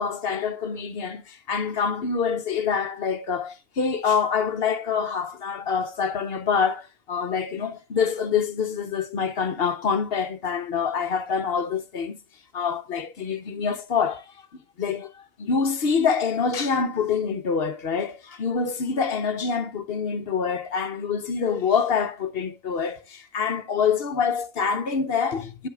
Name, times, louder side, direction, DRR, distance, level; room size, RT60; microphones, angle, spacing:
voice 1, 0.0-12.2 12.5-14.3 14.8-25.7, left 6 dB, 50° left, 0.9 m, -26 dB
9.1 x 8.0 x 2.3 m
omnidirectional pair, 1.5 m